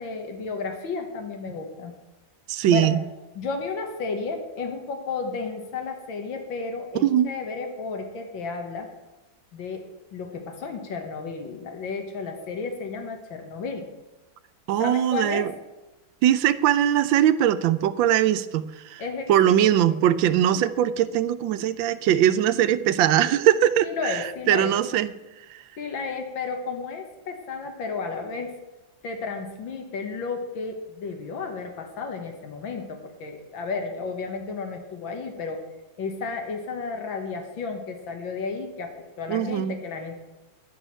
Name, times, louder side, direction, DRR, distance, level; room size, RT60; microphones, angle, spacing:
voice 1, 0.0-1.9 2.6-2.9 3.4-8.9 9.5-9.8 10.1-13.9 14.8-15.5 19.0-19.7 23.8-24.8 25.8-28.5 29.0-35.6 36.0-40.2, left 4 dB, 85° left, 4 dB, 2.2 m, -33 dB
voice 2, 2.5-3.0 7.0-7.3 14.7-15.5 16.2-19.0 19.3-25.1 39.3-39.8, right 11 dB, 85° right, 13 dB, 1.3 m, -21 dB
11.0 x 6.3 x 8.9 m, 1.0 s
omnidirectional pair, 2.1 m